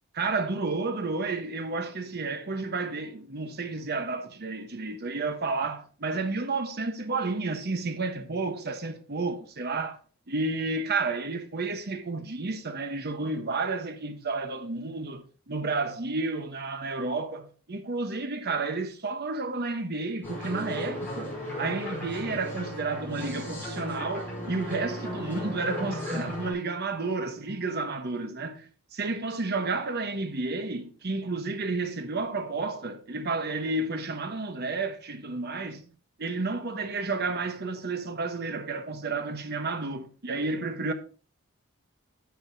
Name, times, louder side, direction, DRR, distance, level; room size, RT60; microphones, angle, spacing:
voice 1, 0.1-10.0 10.3-21.3 21.6-35.8 36.2-40.9, right 3 dB, 50° right, 1.0 m, -31 dB
sound 1, 20.2-26.5, left 1 dB, 10° left, 5.3 m, -36 dB
10.5 x 8.0 x 2.7 m
head